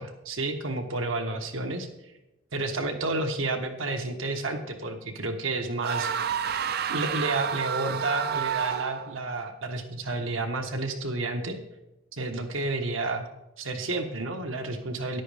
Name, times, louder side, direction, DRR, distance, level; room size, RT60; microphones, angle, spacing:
voice 1, 0.0-1.9 2.5-6.1 6.9-11.6 12.1-13.3 13.6-15.2, right 2 dB, 80° right, 5 dB, 1.2 m, -30 dB
sound 1, 5.8-9.2, right 8 dB, 50° right, 0.4 m, -29 dB
13.5 x 10.5 x 3.5 m, 0.96 s
head